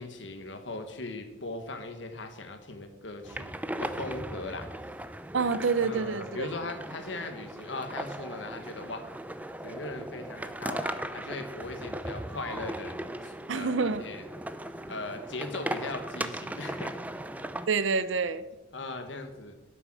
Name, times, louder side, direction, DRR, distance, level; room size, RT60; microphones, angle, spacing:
voice 1, 0.0-3.5 3.8-4.7 5.8-9.0 9.6-14.2 14.9-17.0 18.7-19.6, left 2 dB, 65° left, 1.4 m, -39 dB
sound 1, 3.2-17.7, right 1 dB, 10° right, 0.4 m, -38 dB
voice 2, 5.3-6.5 13.5-14.0 17.7-18.4, right 4 dB, 70° right, 0.6 m, -27 dB
11.5 x 6.9 x 6.2 m
head